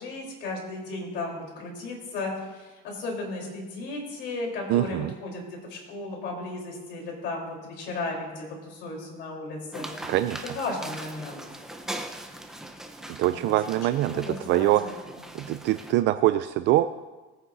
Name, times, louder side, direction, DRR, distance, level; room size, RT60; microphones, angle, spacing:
voice 1, 0.0-10.1 10.4-11.5 13.2-13.6 14.1-14.9, left 2 dB, 60° left, 0 dB, 3.8 m, -35 dB
voice 2, 4.7-5.1 10.1-10.4 13.2-15.0 15.3-16.9, right 15 dB, 60° right, 11 dB, 0.4 m, -24 dB
sound 1, 9.7-15.9, right 1 dB, ahead, 0.8 m, -40 dB
20.0 x 9.5 x 2.7 m, 1.2 s
cardioid pair, 130°, 20 cm